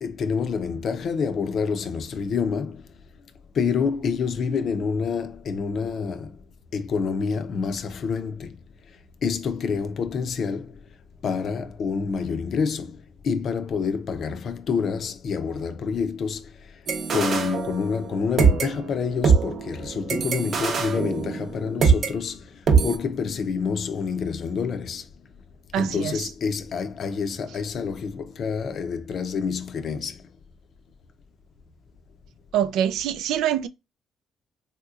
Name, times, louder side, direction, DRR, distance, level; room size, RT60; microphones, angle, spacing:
voice 1, 0.0-2.8 3.5-6.4 6.7-8.6 9.2-10.8 11.2-13.0 13.2-16.5 17.1-22.4 22.8-25.0 25.7-30.2, left 5 dB, 60° left, 0.5 m, -27 dB
sound 1, 16.9-18.1 18.4-22.1 22.7-23.0, right 5 dB, 55° right, 0.7 m, -22 dB
voice 2, 25.7-26.2 32.5-33.7, right 10 dB, 85° right, 0.3 m, -24 dB
3.5 x 2.8 x 2.3 m
cardioid pair, 90°, 0 cm